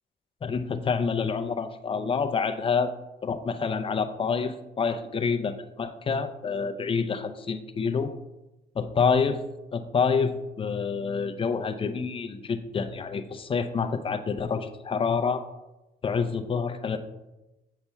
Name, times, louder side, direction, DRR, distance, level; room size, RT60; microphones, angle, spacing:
voice 1, 0.4-2.9 3.2-8.1 8.8-9.4 9.7-15.4 16.0-17.0, left 5 dB, 25° left, 7 dB, 0.5 m, -27 dB
8.0 x 5.7 x 2.2 m, 1.0 s
cardioid pair, 90°, 20 cm